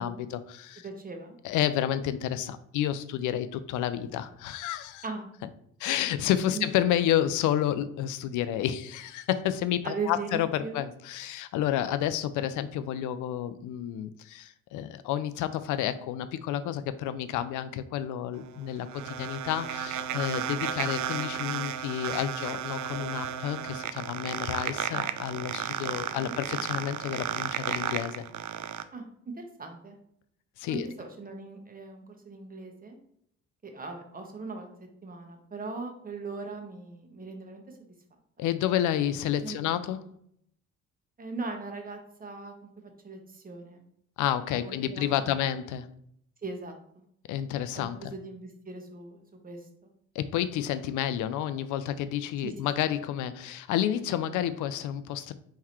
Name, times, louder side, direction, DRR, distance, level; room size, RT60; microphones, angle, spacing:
voice 1, 0.0-0.8 1.4-5.0 5.8-28.2 30.6-30.9 38.4-40.1 44.2-45.9 47.3-48.0 50.1-55.3, left 11 dB, 85° left, 13 dB, 0.4 m, -30 dB
voice 2, 0.8-1.4 5.0-5.3 6.5-6.7 9.8-10.8 26.1-26.4 28.9-29.1 29.4-30.0 30.7-33.0 33.6-37.9 39.4-39.6 41.2-43.8 44.5-45.4 46.4-47.0 47.7-49.9 52.4-52.5, right 3 dB, 30° right, 4 dB, 1.0 m, -39 dB
sound 1, 18.4-28.8, right 10 dB, 70° right, 0.4 m, -33 dB
4.2 x 3.9 x 3.0 m, 0.70 s
cardioid pair, 90°, 30 cm